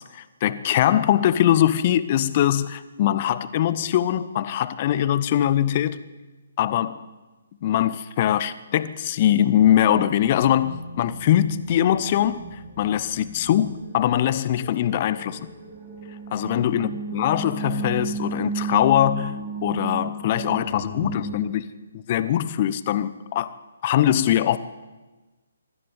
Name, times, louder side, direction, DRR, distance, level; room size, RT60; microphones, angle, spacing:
voice 1, 0.0-6.0 6.6-7.1 7.6-15.5 16.3-21.6 21.9-23.6 23.8-24.6, left 11 dB, 35° left, 1.0 m, -22 dB
sound 1, 9.9-21.3, right 4 dB, 35° right, 6.8 m, -35 dB
23.0 x 14.5 x 8.2 m
figure-of-eight pair, 135°, 0 cm